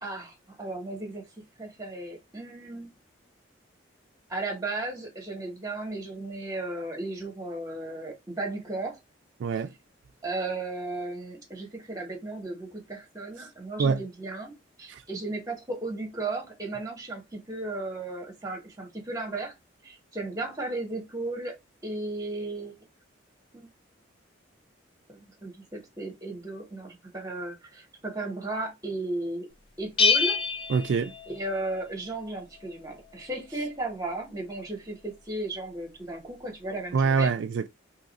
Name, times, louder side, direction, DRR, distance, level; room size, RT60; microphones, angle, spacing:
voice 1, 0.0-2.9 4.3-9.0 10.2-14.5 14.8-19.5 19.8-21.5 21.8-22.8 23.5-23.7 25.1-29.5 29.8-30.4 31.3-37.3, right 2 dB, 15° right, 1.0 m, -35 dB
voice 2, 9.4-9.7 13.8-14.0 14.9-15.0 30.7-31.1 36.9-37.7, right 5 dB, 70° right, 0.3 m, -25 dB
Bell, 30.0-31.8, left 4 dB, 25° left, 0.4 m, -26 dB
2.8 x 2.4 x 3.9 m
head